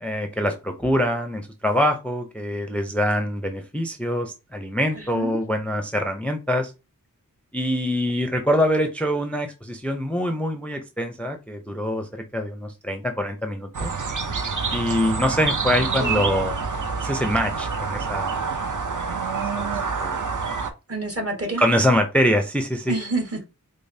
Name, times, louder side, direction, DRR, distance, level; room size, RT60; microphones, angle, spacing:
voice 1, 0.0-6.7 7.5-13.9 14.7-16.6 17.0-18.4 19.5-19.7 20.0-20.2 21.6-22.9, equal, 5° left, 6 dB, 0.5 m, -24 dB
sound 1, 13.7-20.7, right 4 dB, 60° right, 0.6 m, -27 dB
voice 2, 20.9-21.6 22.9-23.4, right 2 dB, 40° right, 2 dB, 1.3 m, -28 dB
5.1 x 2.0 x 2.6 m, 0.28 s
wide cardioid pair, 45°, 35 cm